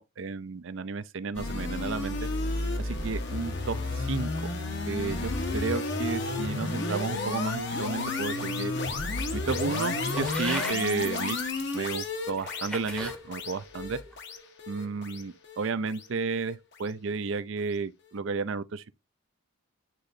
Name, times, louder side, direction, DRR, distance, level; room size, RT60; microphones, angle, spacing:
voice 1, 0.0-2.2 2.8-4.5 4.9-8.7 9.3-11.4 11.7-14.0 14.7-19.0, right 4 dB, 60° right, 0.5 m, -32 dB
sound 1, 1.3-16.5, left 2 dB, 55° left, 1.1 m, -32 dB
sound 2, 10.2-10.8 11.6-11.7 12.4-13.2 13.8-14.2, equal, 5° left, 0.9 m, -37 dB
9.9 x 3.8 x 2.6 m
head